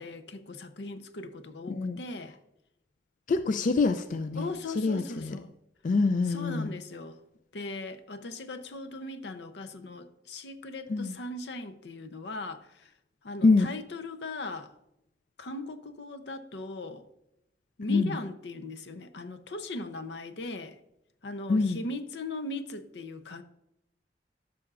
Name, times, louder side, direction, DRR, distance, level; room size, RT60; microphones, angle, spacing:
voice 1, 0.0-2.4 4.4-5.5 6.2-7.2 7.5-12.9 13.2-14.7 15.4-17.0 17.8-20.8 21.2-23.4, left 2 dB, 80° left, 0.7 m, -39 dB
voice 2, 1.7-2.0 3.3-4.5 4.8-5.4 5.8-6.7 10.9-11.1 13.4-13.7 17.9-18.2 21.5-21.8, left 3 dB, 45° left, 0.3 m, -25 dB
13.0 x 6.0 x 2.4 m
head